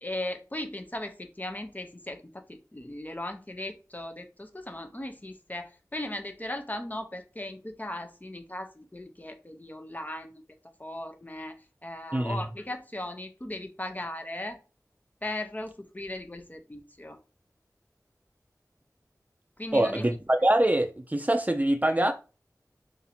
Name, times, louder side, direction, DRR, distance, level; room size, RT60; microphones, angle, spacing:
voice 1, 0.0-10.4 10.8-14.6 15.2-17.2 19.6-20.0, left 1 dB, 25° left, 0.7 m, -38 dB
voice 2, 12.1-12.4 19.7-22.1, right 1 dB, 25° right, 0.5 m, -24 dB
2.7 x 2.6 x 4.2 m
wide cardioid pair, 45°, 6 cm